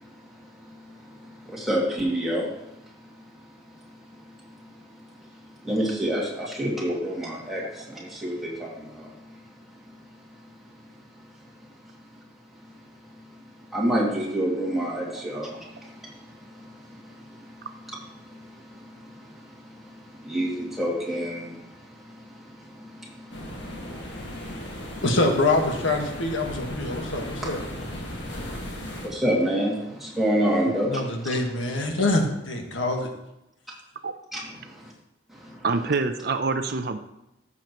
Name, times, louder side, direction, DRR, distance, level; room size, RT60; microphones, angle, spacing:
voice 1, 1.5-2.5 5.6-9.1 13.7-15.9 17.3-17.4 18.3-18.4 18.8-19.0 20.2-21.6 22.7-23.2 23.6-23.7 24.1-24.2 28.2-28.3 29.0-31.0 34.3-34.7 35.4-35.6, equal, ahead, -5 dB, 2.3 m, -27 dB
sound 1, 23.3-29.1, left 1 dB, 70° left, 1.8 m, -36 dB
voice 2, 25.0-27.6 30.8-33.1, left 2 dB, 85° left, 2 dB, 1.5 m, -25 dB
voice 3, 35.6-37.0, right 4 dB, 55° right, 8 dB, 0.6 m, -26 dB
14.5 x 7.2 x 3.0 m, 0.88 s
head